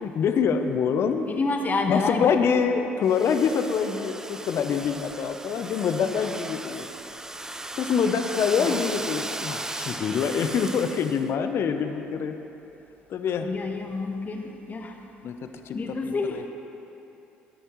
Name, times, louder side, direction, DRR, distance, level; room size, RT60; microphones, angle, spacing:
voice 1, 0.0-1.3 1.9-6.9 7.8-12.4 13.1-13.5 15.2-15.3 15.6-15.8 16.0-16.4, left 6 dB, 55° left, 7 dB, 0.7 m, -25 dB
voice 2, 1.3-2.5 8.5-8.8 13.4-15.0 15.7-16.4, left 3 dB, 35° left, 3 dB, 1.3 m, -29 dB
Domestic sounds home sounds, 3.1-11.3, right 2 dB, 10° right, 0.5 m, -36 dB
17.5 x 9.9 x 3.1 m, 2.9 s
hypercardioid pair, 60°, 5 cm